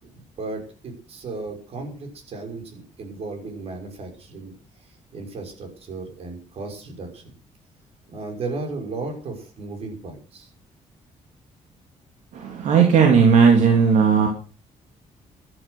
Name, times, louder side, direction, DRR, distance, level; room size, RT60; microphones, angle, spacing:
voice 1, 0.0-4.5 4.8-7.3 8.1-10.5, right 3 dB, 50° right, 4 dB, 5.9 m, -35 dB
voice 2, 12.3-14.3, right 6 dB, 70° right, 1 dB, 3.2 m, -16 dB
13.5 x 12.0 x 6.3 m, 0.40 s
cardioid pair, 175°, 13 cm